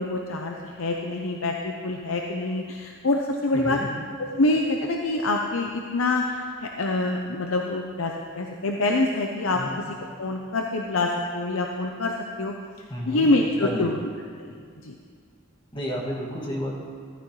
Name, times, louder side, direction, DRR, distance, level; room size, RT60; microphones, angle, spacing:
voice 1, 0.0-3.8 4.4-6.3 6.6-9.6 10.2-12.5 13.1-14.1 14.4-14.6 14.8-15.0, left 2 dB, 80° left, 1 dB, 0.8 m, -25 dB
voice 2, 3.5-3.9 9.5-9.7 12.9-13.3 13.6-13.9 15.7-16.7, equal, 25° left, -4 dB, 2.1 m, -31 dB
14.0 x 13.5 x 3.2 m, 2.1 s
head